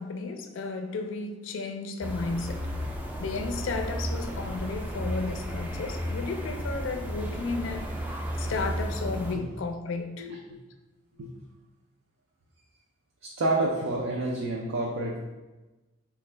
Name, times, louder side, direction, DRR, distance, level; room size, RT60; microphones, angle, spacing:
voice 1, 0.0-2.7 3.2-8.0 8.4-10.3, left 4 dB, 65° left, 0.4 m, -33 dB
sound 1, 2.0-9.3, equal, 10° right, 0.3 m, -33 dB
voice 2, 10.2-10.6 11.2-11.3 13.2-15.2, right 2 dB, 85° right, 0.4 m, -29 dB
4.0 x 2.3 x 3.2 m
head